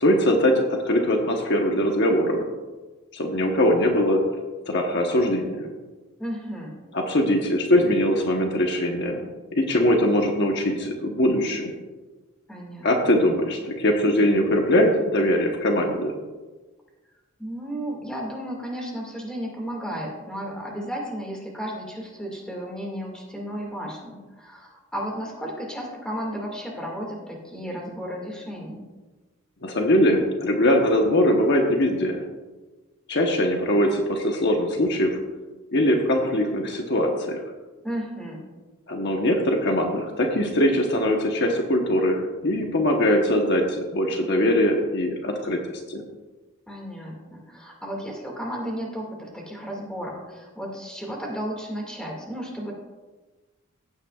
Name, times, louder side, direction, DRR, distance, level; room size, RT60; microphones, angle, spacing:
voice 1, 0.0-2.4 3.1-4.2 4.7-5.7 6.9-11.8 12.8-16.1 29.6-32.2 33.1-35.2 35.7-37.4 38.9-45.6 45.9-46.0, left 1 dB, 55° left, 2 dB, 1.1 m, -22 dB
voice 2, 6.2-6.8 12.5-12.9 17.4-28.8 37.8-38.5 46.7-52.7, equal, 5° left, -2 dB, 2.1 m, -33 dB
15.0 x 8.8 x 2.4 m, 1.2 s
head